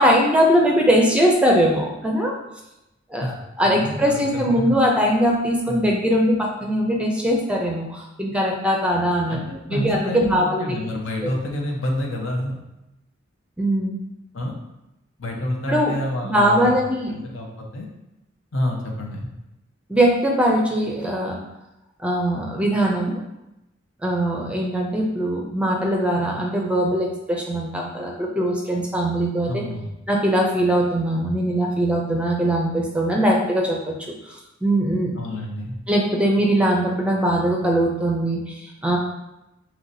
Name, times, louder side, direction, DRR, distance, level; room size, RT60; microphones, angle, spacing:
voice 1, 0.0-2.3 3.1-9.4 9.7-10.8 11.2-11.3 13.6-14.0 15.7-15.9 16.2-17.1 19.9-21.4 22.0-23.2 24.0-29.6 30.1-35.1 35.9-39.0, equal, 5° right, -1 dB, 0.5 m, -21 dB
voice 2, 3.6-4.7 5.7-5.8 9.3-12.6 14.3-14.5 15.2-16.8 17.1-17.9 18.5-19.3 29.5-29.9 35.2-35.8, left 1 dB, 75° left, -1 dB, 0.9 m, -28 dB
5.6 x 3.1 x 2.6 m, 0.93 s
head